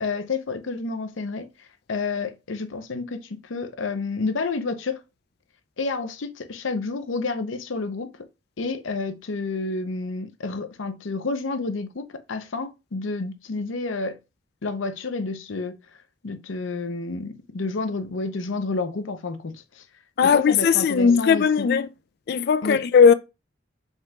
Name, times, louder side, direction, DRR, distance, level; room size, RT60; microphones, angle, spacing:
voice 1, 0.0-1.5 1.9-5.0 5.8-8.1 8.6-14.2 14.6-15.8 16.2-19.8 20.2-21.7 22.6-22.8, left 3 dB, 80° left, 0.7 m, -30 dB
voice 2, 20.2-21.9 22.3-23.1, left 6 dB, 55° left, 0.3 m, -18 dB
5.3 x 3.8 x 2.3 m
head